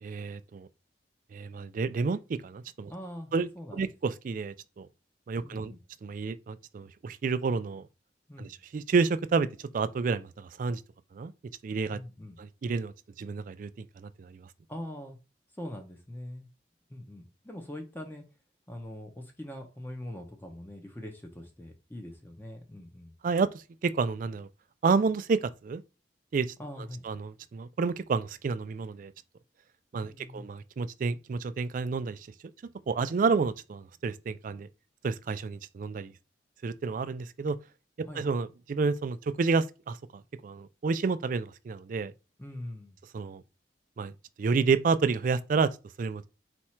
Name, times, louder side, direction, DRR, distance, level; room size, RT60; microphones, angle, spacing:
voice 1, 0.0-0.7 1.3-2.9 3.3-4.9 5.3-5.7 6.0-7.8 8.4-9.5 9.7-10.8 11.1-11.3 11.6-12.0 12.4-12.9 13.2-13.7 14.0-14.5 23.2-23.5 23.8-24.5 24.8-25.8 26.3-26.5 27.0-29.1 29.9-32.2 32.9-34.7 35.0-36.1 36.6-37.6 38.0-42.1 43.1-43.4 44.0-44.1 44.4-45.7 46.0-46.3, right 4 dB, 45° right, 0.3 m, -30 dB
voice 2, 2.9-3.8 5.4-5.8 8.3-8.6 11.9-12.4 14.7-15.2 15.5-16.5 16.9-18.2 18.7-23.1 26.6-27.0 30.0-30.4 38.0-38.2 42.4-43.0, left 1 dB, 10° left, 0.6 m, -42 dB
4.3 x 2.4 x 4.3 m
head